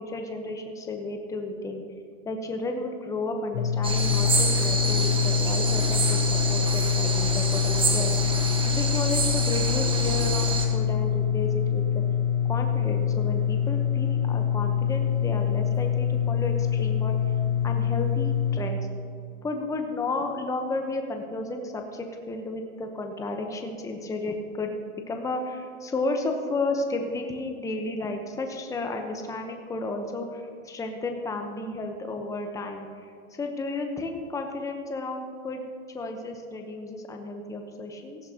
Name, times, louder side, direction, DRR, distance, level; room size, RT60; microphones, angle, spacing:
voice 1, 0.0-1.8 2.2-8.2 8.7-12.0 12.5-17.2 17.6-18.8 19.4-24.7 25.1-35.6 35.9-38.2, left 2 dB, 10° left, 4 dB, 0.9 m, -32 dB
sound 1, 3.5-18.6, left 8 dB, 55° left, 1.1 m, -25 dB
sound 2, 3.8-10.7, right 3 dB, 15° right, 1.3 m, -28 dB
17.0 x 14.5 x 2.9 m, 2.3 s
hypercardioid pair, 130°, 39 cm